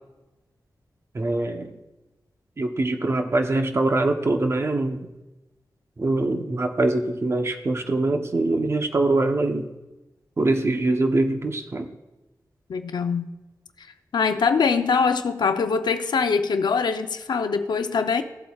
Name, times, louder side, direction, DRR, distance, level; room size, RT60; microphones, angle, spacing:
voice 1, 1.1-1.7 2.6-5.1 6.0-9.7 10.4-11.9, right 2 dB, 35° right, 0.8 m, -23 dB
voice 2, 12.7-13.3 13.8-13.9 14.1-18.2, left 5 dB, 85° left, 0.6 m, -23 dB
16.0 x 7.8 x 2.4 m
wide cardioid pair, 115°, 7 cm